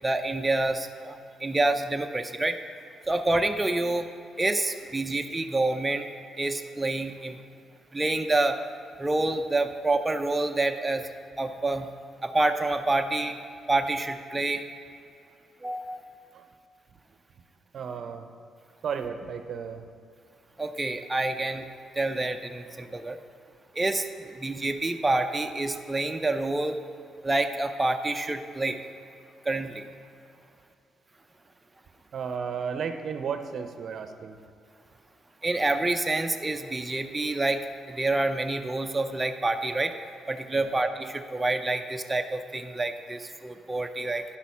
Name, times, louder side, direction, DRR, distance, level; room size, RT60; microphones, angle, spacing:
voice 1, 0.0-2.6 3.1-4.1 4.4-6.1 6.4-7.4 7.9-8.6 9.0-11.1 11.4-11.9 12.2-13.3 13.7-14.7 15.6-16.0 20.6-21.7 22.0-23.2 23.7-26.8 27.2-28.8 29.4-29.8 35.4-39.9 40.3-44.2, right 2 dB, 15° right, 6 dB, 0.5 m, -27 dB
voice 2, 17.7-18.3 18.8-19.8 32.1-34.4 40.5-40.7, right 6 dB, 60° right, 8 dB, 0.6 m, -34 dB
10.0 x 6.2 x 5.6 m, 2.5 s
supercardioid pair, 65°, 0 cm